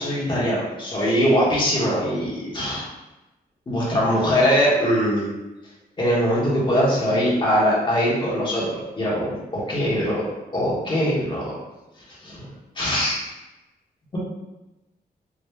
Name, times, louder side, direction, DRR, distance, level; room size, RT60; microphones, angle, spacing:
voice 1, 0.0-2.9 3.7-5.2 6.0-10.2 10.5-11.4 12.2-12.5 12.7-13.2, equal, 30° left, -7 dB, 1.4 m, -22 dB
4.9 x 3.1 x 2.3 m, 1.0 s
wide cardioid pair, 150°, 17 cm